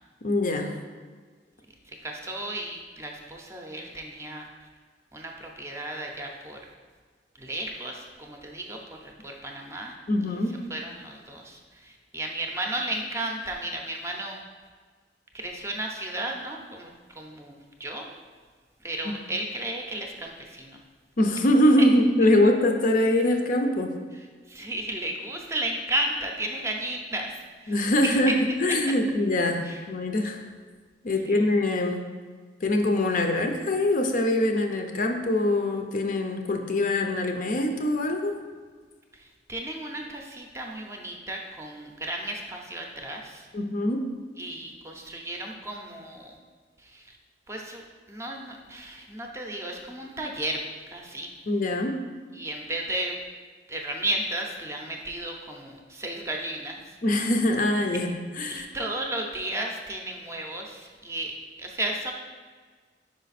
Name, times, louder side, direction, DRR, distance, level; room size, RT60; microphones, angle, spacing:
voice 1, 0.2-0.7 10.1-10.6 21.2-24.0 27.7-30.4 31.0-32.1 32.6-38.4 43.5-44.1 51.5-52.0 57.0-58.1 58.4-58.7, left 1 dB, 50° left, 4 dB, 0.5 m, -23 dB
voice 2, 2.0-4.5 5.1-6.6 7.3-9.9 10.7-14.4 15.3-16.9 17.2-18.1 18.8-20.8 21.8-21.9 24.1-27.7 28.0-28.3 29.6-29.8 31.2-31.5 39.2-43.5 44.4-46.4 46.8-47.2 47.5-51.3 52.3-53.2 53.7-56.8 58.5-62.1, right 1 dB, 15° right, 1 dB, 0.6 m, -34 dB
5.0 x 4.9 x 4.1 m, 1.5 s
head